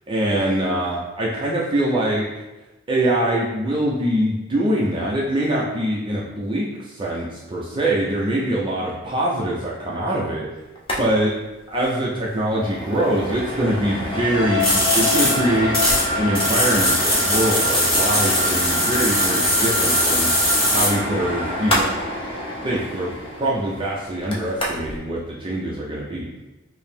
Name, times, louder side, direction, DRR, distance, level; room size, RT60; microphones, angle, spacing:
voice 1, 0.1-2.2 2.9-10.5 11.0-11.3 11.7-15.7 16.1-20.3 20.7-22.0 22.6-26.3, right 1 dB, 25° right, -4 dB, 0.5 m, -23 dB
sound 1, 10.8-11.0 11.3-11.4 11.7-11.9 12.3-25.0, equal, 25° left, 0.6 m, -28 dB
sound 2, 14.1-21.9, left 2 dB, 50° left, 0.9 m, -29 dB
sound 3, 14.6-16.0 16.3-20.9, left 1 dB, 5° left, 1.3 m, -20 dB
4.5 x 2.0 x 3.4 m, 1.1 s
head